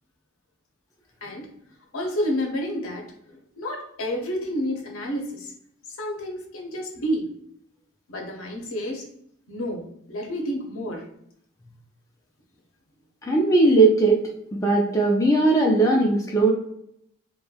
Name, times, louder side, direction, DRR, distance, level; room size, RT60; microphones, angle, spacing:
voice 1, 1.9-5.5 6.0-7.3 8.1-9.1 9.5-11.1, equal, 80° left, 2 dB, 0.7 m, -30 dB
voice 2, 13.2-14.2 14.5-16.5, right 2 dB, 15° left, -1 dB, 0.4 m, -18 dB
2.9 x 2.1 x 2.3 m, 0.72 s
head